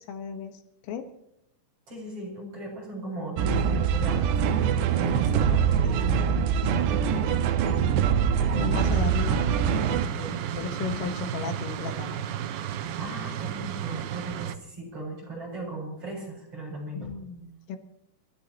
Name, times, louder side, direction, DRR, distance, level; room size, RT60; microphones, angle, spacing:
voice 1, 0.1-1.1 5.8-6.2 8.5-12.2 16.9-17.8, left 6 dB, 80° left, 7 dB, 4.0 m, -35 dB
voice 2, 1.9-6.3 6.9-7.5 8.5-9.0 10.1-10.4 13.0-17.1, right 2 dB, 30° right, -1 dB, 8.2 m, -38 dB
sound 1, 3.4-10.1, right 7 dB, 75° right, 2.7 m, -24 dB
sound 2, 8.8-14.6, right 10 dB, 90° right, 2.1 m, -33 dB
29.5 x 15.5 x 3.0 m, 0.83 s
omnidirectional pair, 5.9 m